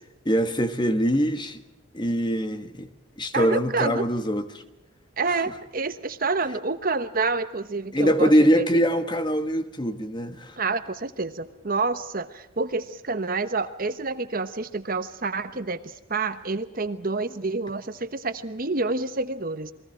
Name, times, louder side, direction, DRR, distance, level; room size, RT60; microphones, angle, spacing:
voice 1, 0.2-1.6 1.9-2.9 3.2-4.5 7.9-10.5, equal, 20° left, 1.4 m, -23 dB
voice 2, 3.3-4.0 5.2-8.7 10.6-19.7, right 3 dB, 45° right, 1.1 m, -28 dB
29.0 x 21.5 x 4.5 m
head